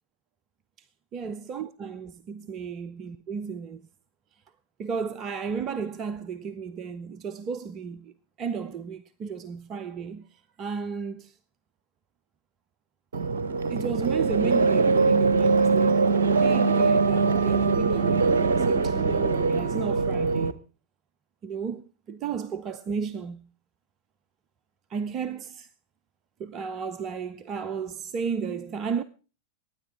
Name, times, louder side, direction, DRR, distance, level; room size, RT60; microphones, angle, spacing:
voice 1, 1.1-3.8 4.8-8.1 8.4-11.4 13.7-16.0 16.4-20.5 21.4-23.4 24.9-25.7 26.4-29.0, right 6 dB, 30° right, 0.7 m, -33 dB
sound 1, 13.1-20.5, right 4 dB, 65° right, 0.9 m, -22 dB
23.0 x 10.0 x 3.6 m
figure-of-eight pair, 90°, 0 cm